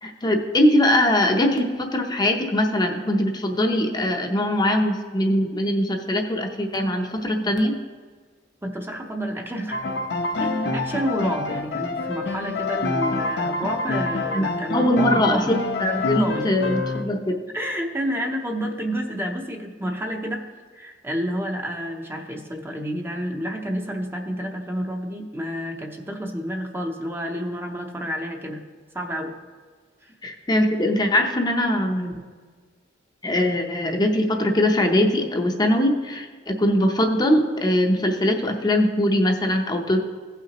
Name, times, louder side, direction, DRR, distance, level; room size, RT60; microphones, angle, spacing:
voice 1, 0.0-7.7 14.3-14.4 14.7-17.4 30.2-32.2 33.2-40.0, left 1 dB, 20° left, 3 dB, 0.7 m, -21 dB
voice 2, 8.6-9.8 10.4-15.5 16.2-16.5 17.5-20.5 20.7-28.6 28.9-29.4 30.0-30.1, equal, 10° right, 3 dB, 0.7 m, -29 dB
Piano, 9.7-17.0, left 3 dB, 60° left, 0.8 m, -27 dB
16.0 x 5.8 x 2.9 m, 1.5 s
head